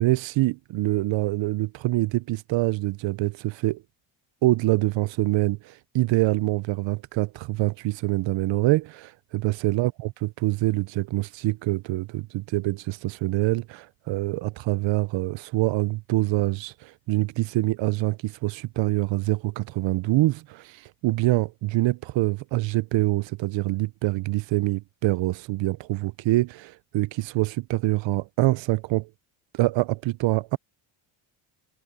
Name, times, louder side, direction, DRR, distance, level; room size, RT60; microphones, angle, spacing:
voice 1, 0.0-3.8 4.4-29.1 29.5-30.6, right 19 dB, 65° right, 0.6 m, -25 dB
cardioid pair, 110°, 49 cm